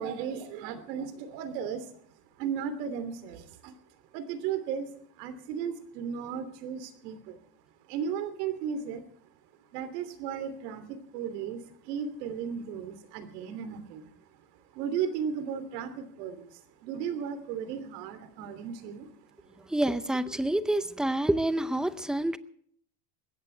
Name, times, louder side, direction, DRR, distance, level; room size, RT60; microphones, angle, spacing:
voice 1, 0.0-1.9 2.4-3.7 4.1-4.9 5.2-7.4 7.9-9.0 9.7-14.1 14.7-19.1, right 7 dB, 85° right, 11 dB, 3.0 m, -35 dB
voice 2, 19.7-22.4, right 1 dB, ahead, 13 dB, 0.6 m, -27 dB
21.0 x 16.5 x 3.4 m, 0.62 s
cardioid pair, 145°, 47 cm